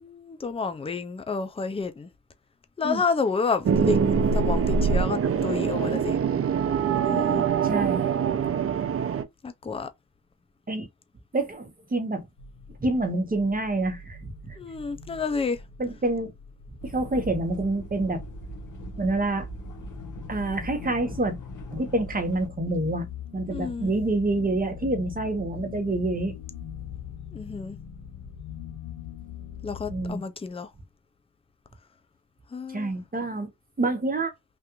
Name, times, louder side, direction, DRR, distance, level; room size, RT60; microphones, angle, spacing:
voice 1, 0.0-2.1 2.8-6.2 7.1-7.5 9.4-9.9 14.6-15.6 23.5-23.9 27.3-27.8 29.6-30.7 32.5-32.9, left 5 dB, 15° left, 0.4 m, -30 dB
sound 1, 3.6-9.2, right 6 dB, 40° right, 0.5 m, -24 dB
voice 2, 7.6-8.0 10.7-10.9 11.3-12.3 12.8-14.2 14.4-14.5 15.8-16.3 16.8-18.2 19.0-19.5 20.3-21.4 21.7-23.1 23.3-26.4 29.9-30.2 32.7-33.5 33.8-34.3, right 2 dB, 25° right, 0.9 m, -27 dB
sound 2, 12.4-30.1, left 7 dB, 90° left, 0.8 m, -42 dB
sound 3, 16.8-22.5, right 1 dB, 60° left, 1.5 m, -40 dB
3.4 x 2.5 x 2.9 m
wide cardioid pair, 115°, 36 cm